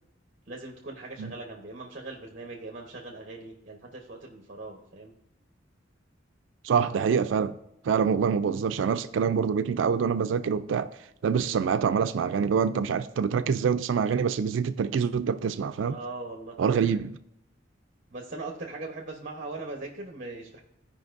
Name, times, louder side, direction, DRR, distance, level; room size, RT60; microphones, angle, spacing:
voice 1, 0.5-5.1 15.8-16.5 18.1-20.6, right 2 dB, 45° right, 1.0 m, -40 dB
voice 2, 6.6-7.5 7.8-11.0 11.2-16.0 16.6-17.2, right 6 dB, 75° right, 0.4 m, -25 dB
15.5 x 5.2 x 2.5 m
head